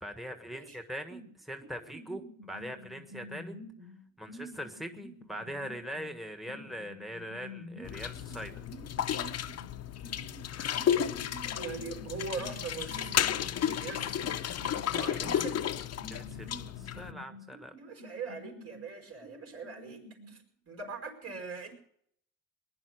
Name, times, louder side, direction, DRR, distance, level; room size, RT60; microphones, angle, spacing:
voice 1, 0.0-3.5 4.2-8.6 15.1-15.4 16.1-17.7, equal, ahead, 6 dB, 1.5 m, -42 dB
sound 1, 1.1-1.3 1.6-6.2 6.5-9.8 10.0-18.9 19.2-20.3, left 1 dB, 80° right, 3.4 m, -49 dB
sound 2, 7.8-17.1, left 9 dB, 55° left, 0.8 m, -33 dB
voice 2, 11.5-14.4 14.9-15.7 17.8-21.7, right 4 dB, 55° right, 3 dB, 5.2 m, -42 dB
20.0 x 11.0 x 6.5 m, 0.68 s
cardioid pair, 90°, 30 cm